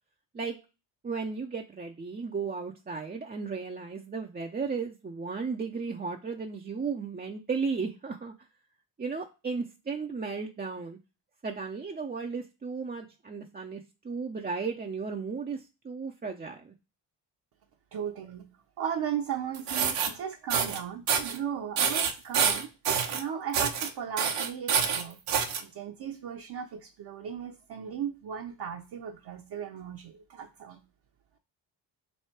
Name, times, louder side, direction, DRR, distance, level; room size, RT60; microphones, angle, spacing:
voice 1, 1.0-8.3 9.0-11.0 11.4-16.7, right 5 dB, 20° right, 2 dB, 0.5 m, -35 dB
voice 2, 17.9-18.5 18.8-22.7 23.1-25.2 25.6-30.8, right 8 dB, 55° right, 1 dB, 0.9 m, -36 dB
sound 1, 19.5-20.1 20.5-20.8 21.1-21.4 21.8-23.2 23.5-23.9 24.2-25.6, right 7 dB, 80° right, 1.0 m, -27 dB
3.3 x 2.6 x 4.4 m, 0.29 s
supercardioid pair, 55°, 49 cm